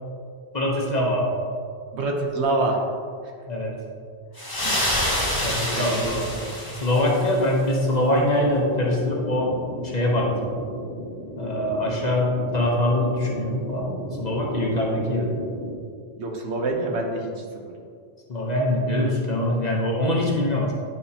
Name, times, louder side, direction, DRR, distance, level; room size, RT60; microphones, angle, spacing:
voice 1, 0.5-1.4 3.5-3.7 5.4-6.3 6.8-9.5 9.8-10.5 11.4-13.9 14.2-15.3 18.3-20.7, left 1 dB, 40° left, -2 dB, 1.0 m, -23 dB
voice 2, 1.9-2.8 4.6-4.8 5.7-6.2 16.2-17.6, right 2 dB, 70° right, 1 dB, 1.1 m, -26 dB
sound 1, 4.4-7.4, left 1 dB, 20° left, 1.3 m, -27 dB
sound 2, 8.3-15.7, equal, 35° right, 1.5 m, -35 dB
9.7 x 4.9 x 2.8 m, 2.2 s
omnidirectional pair, 1.2 m